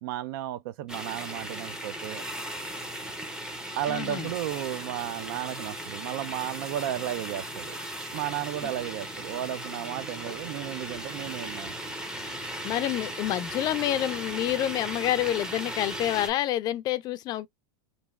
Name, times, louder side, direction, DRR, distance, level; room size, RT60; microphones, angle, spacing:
voice 1, 0.0-2.3 3.8-7.8 8.1-12.0, right 13 dB, 65° right, 0.4 m, -34 dB
sound 1, 0.9-16.3, right 1 dB, 5° right, 0.6 m, -37 dB
voice 2, 3.9-4.3 8.6-8.7 12.6-17.5, left 13 dB, 35° left, 0.4 m, -28 dB
3.2 x 2.5 x 2.3 m
supercardioid pair, 140°, 12 cm